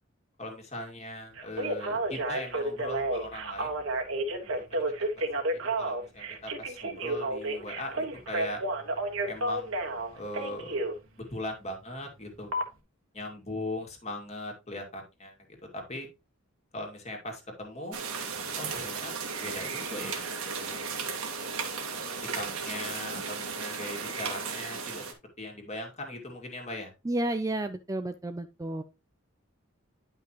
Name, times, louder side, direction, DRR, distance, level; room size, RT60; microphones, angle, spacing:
voice 1, 0.4-3.8 4.4-8.6 9.2-9.7 10.1-10.9 11.2-12.5 13.1-16.1 16.7-18.0 18.6-21.0 22.2-25.1 25.4-26.9, left 1 dB, 30° left, 2 dB, 2.3 m, -40 dB
Telephone, 1.4-10.9 12.5-12.6, right 2 dB, 65° right, 1.5 m, -31 dB
sound 1, 17.9-25.1, right 5 dB, 85° right, 1.9 m, -35 dB
voice 2, 27.1-28.8, right 1 dB, 15° right, 9 dB, 0.4 m, -31 dB
10.5 x 5.7 x 3.0 m, 0.26 s
head